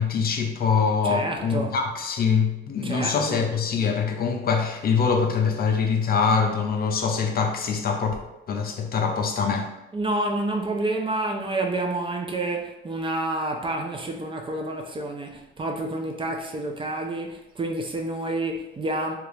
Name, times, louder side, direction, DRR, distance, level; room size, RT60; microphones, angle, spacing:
voice 1, 0.0-8.2 8.5-9.7, left 5 dB, 50° left, 0.5 m, -24 dB
voice 2, 1.0-1.8 2.8-3.4 9.9-19.2, right 2 dB, 25° right, 0.5 m, -29 dB
2.9 x 2.4 x 3.3 m
cardioid pair, 90°, 20 cm